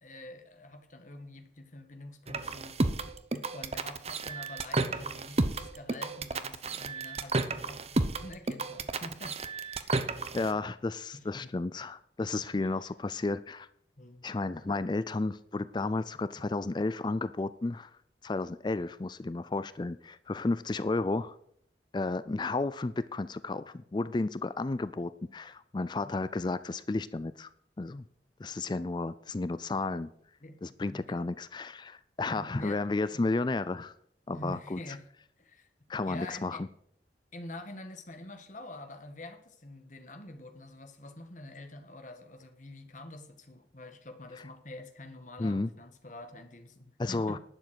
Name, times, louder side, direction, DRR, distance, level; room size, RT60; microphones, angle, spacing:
voice 1, 0.0-9.4 9.7-10.6 11.1-11.5 12.5-12.7 14.0-14.3 26.0-26.1 30.4-31.1 32.3-32.8 33.1-33.3 34.3-35.0 35.4-35.7 36.1-36.6 37.3-47.4, left 1 dB, 45° left, 1.7 m, -46 dB
sound 1, 2.3-10.5, right 3 dB, 35° right, 0.9 m, -32 dB
voice 2, 10.3-13.7 14.2-17.9 18.2-21.3 21.9-27.5 27.8-28.0 28.4-30.1 30.6-33.9 34.3-34.8 35.9-36.7 45.4-45.7 47.0-47.4, left 3 dB, 25° left, 0.4 m, -32 dB
11.5 x 7.3 x 8.0 m
head